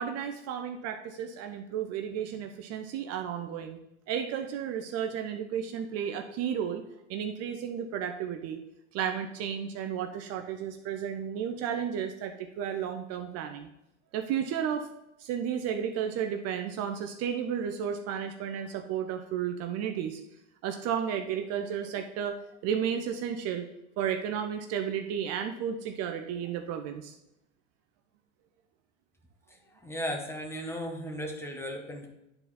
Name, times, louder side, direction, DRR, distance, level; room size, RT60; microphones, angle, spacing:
voice 1, 0.0-3.8 4.1-6.8 7.1-8.6 8.9-13.7 14.1-14.9 15.2-20.2 20.6-22.4 22.6-23.7 24.0-27.1, right 8 dB, 45° right, 6 dB, 0.7 m, -33 dB
voice 2, 29.8-32.1, equal, 5° left, 2 dB, 1.3 m, -35 dB
9.8 x 4.1 x 4.2 m, 0.87 s
hypercardioid pair, 105°, 35 cm